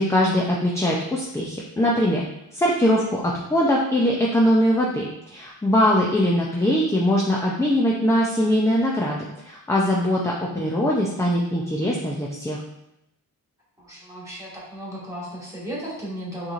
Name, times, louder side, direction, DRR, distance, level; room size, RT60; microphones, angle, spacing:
voice 1, 0.0-2.2 2.5-5.1 5.3-12.6, equal, 10° left, -3 dB, 0.4 m, -21 dB
voice 2, 13.8-16.5, equal, 10° right, -6 dB, 1.6 m, -35 dB
6.5 x 3.1 x 2.4 m, 0.84 s
wide cardioid pair, 145°, 37 cm